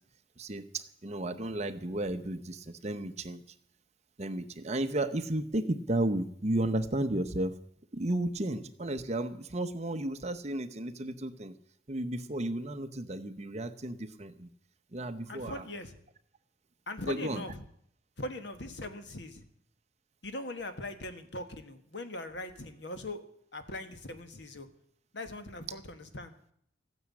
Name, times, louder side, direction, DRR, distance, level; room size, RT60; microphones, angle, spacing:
voice 1, 0.4-3.4 4.2-7.5 7.9-11.5 11.9-14.5 14.9-15.6 17.0-17.4, right 1 dB, 35° right, 10 dB, 0.9 m, -33 dB
voice 2, 15.3-15.9 16.9-17.7 18.2-19.4 20.2-23.2 23.5-24.7 25.1-26.3, left 2 dB, 70° left, 9 dB, 1.5 m, -40 dB
14.0 x 9.4 x 8.5 m, 0.68 s
head